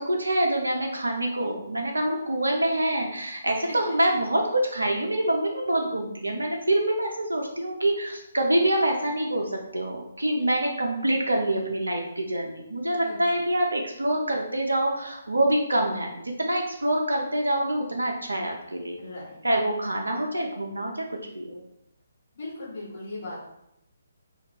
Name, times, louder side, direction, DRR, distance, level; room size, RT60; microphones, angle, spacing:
voice 1, 0.0-19.0 19.4-21.6, right 1 dB, 80° right, 1 dB, 0.3 m, -26 dB
voice 2, 3.6-4.0 10.4-10.5 13.0-13.2 19.0-19.4 22.3-23.5, left 2 dB, 45° left, -8 dB, 0.9 m, -38 dB
2.2 x 2.1 x 2.7 m, 0.83 s
figure-of-eight pair, 140°, 0 cm